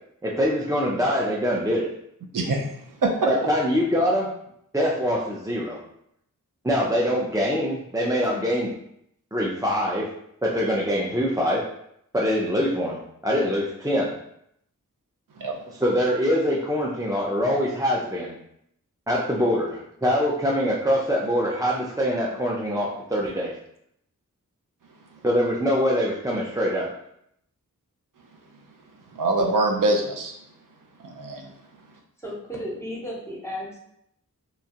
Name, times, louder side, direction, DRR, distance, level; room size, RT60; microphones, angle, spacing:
voice 1, 0.2-1.9 3.3-4.3 4.7-5.8 6.6-8.7 9.3-10.1 10.4-11.6 12.1-14.1 15.8-18.4 19.1-23.5 25.2-26.9, equal, 10° right, -4 dB, 0.4 m, -24 dB
voice 2, 2.3-2.6 3.0-3.1 15.4-15.6 29.1-30.3 31.0-31.5, right 2 dB, 70° right, 1 dB, 0.6 m, -24 dB
voice 3, 32.2-33.8, equal, 10° left, -3 dB, 0.9 m, -34 dB
2.9 x 2.3 x 2.8 m, 0.74 s
cardioid pair, 45°, 33 cm